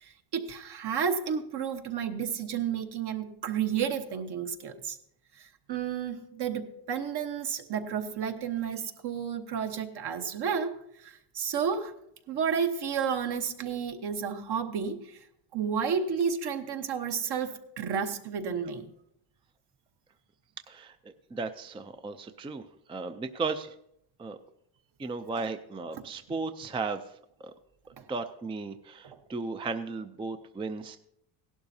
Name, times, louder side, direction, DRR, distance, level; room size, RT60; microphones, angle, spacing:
voice 1, 0.0-5.0 5.4-11.9 12.3-15.2 15.5-18.9 25.3-25.4 28.0-28.1, right 7 dB, 55° right, 6 dB, 1.3 m, -31 dB
voice 2, 20.7-23.7 24.2-24.4 25.0-27.0 27.4-27.5 28.1-31.0, right 4 dB, 10° right, 8 dB, 0.4 m, -35 dB
16.5 x 11.5 x 2.8 m, 0.76 s
cardioid pair, 95°, 47 cm